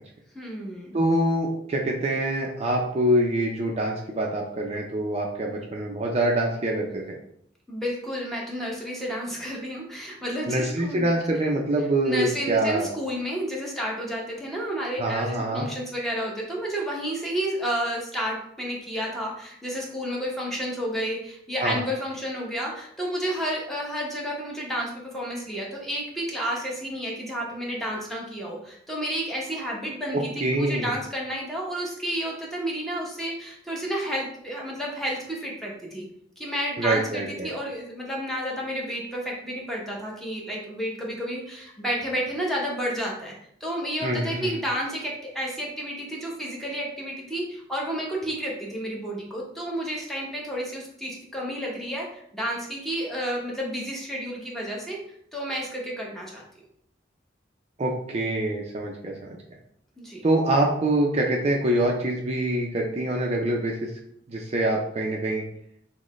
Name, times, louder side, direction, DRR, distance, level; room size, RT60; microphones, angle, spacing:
voice 1, 0.3-1.0 7.7-11.1 12.1-36.0 36.4-43.3 43.6-55.0 55.3-56.4 60.0-60.3, equal, ahead, -3 dB, 0.9 m, -31 dB
voice 2, 0.9-7.0 10.5-12.9 15.0-15.7 21.6-21.8 30.1-30.9 36.8-37.5 44.0-44.5 57.8-59.4 60.2-63.9 64.3-65.4, right 1 dB, 35° right, 0 dB, 0.5 m, -25 dB
6.1 x 2.1 x 3.1 m, 0.69 s
head